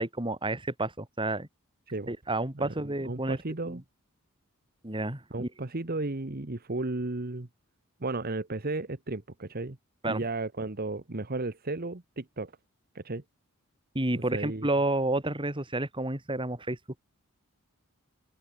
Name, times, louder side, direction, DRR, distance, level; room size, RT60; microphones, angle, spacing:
voice 1, 0.0-1.5 2.1-3.4 3.7-3.8 4.8-5.5 10.0-10.2 13.9-16.8, right 2 dB, 25° right, 3.8 m, -30 dB
voice 2, 2.5-3.8 5.3-7.5 8.0-9.8 10.0-12.5 12.9-13.2 14.3-14.7, right 2 dB, 45° right, 1.3 m, -34 dB
open air
head